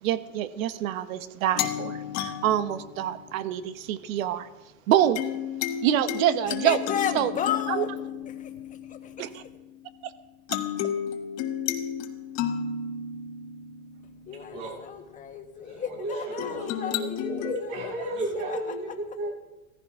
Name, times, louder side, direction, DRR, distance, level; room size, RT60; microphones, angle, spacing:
voice 1, 0.0-4.5 4.9-5.2 5.8-6.8 7.1-7.3 7.7-7.8 9.2-9.4 10.5-10.6, right 11 dB, 80° right, 12 dB, 1.3 m, -26 dB
sound 1, 1.6-3.8 5.2-9.9 10.5-14.7 16.4-17.5, left 9 dB, 40° left, 1.4 m, -33 dB
voice 2, 6.6-7.9 8.2-9.4 14.3-18.1 18.5-18.6, left 8 dB, 20° left, 4 dB, 1.5 m, -34 dB
voice 3, 15.7-19.3, right 1 dB, 55° right, -1 dB, 6.8 m, -33 dB
17.0 x 15.0 x 4.8 m, 1.1 s
supercardioid pair, 155°, 41 cm